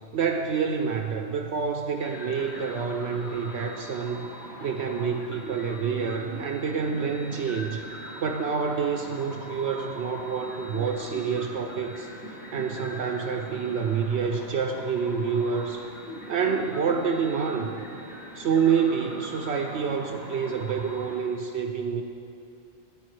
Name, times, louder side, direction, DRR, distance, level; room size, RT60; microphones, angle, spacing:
voice 1, 0.1-4.3 4.6-7.8 8.2-12.1 12.5-15.9 16.3-17.7 18.3-22.0, right 6 dB, 65° right, 4 dB, 0.8 m, -27 dB
sound 1, 2.0-21.1, equal, 55° left, 2.0 m, -41 dB
13.0 x 9.1 x 3.2 m, 2.5 s
omnidirectional pair, 1.3 m